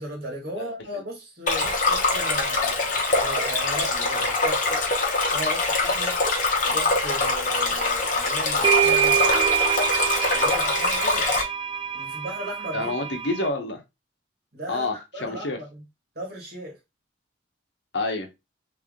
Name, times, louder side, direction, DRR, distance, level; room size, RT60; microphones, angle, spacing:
voice 1, 0.0-4.8 5.3-6.2 6.6-9.3 10.3-11.3 11.9-12.9 14.5-15.8 16.2-16.8, right 1 dB, 50° right, 1.8 m, -36 dB
voice 2, 0.6-1.0 12.7-13.8 14.7-15.6 17.9-18.3, left 2 dB, 65° left, 1.0 m, -28 dB
Stream, 1.5-11.4, left 3 dB, 40° left, 1.1 m, -24 dB
sound 1, 8.0-8.1 8.6-13.5, right 9 dB, 25° right, 0.4 m, -25 dB
3.4 x 3.2 x 3.6 m
head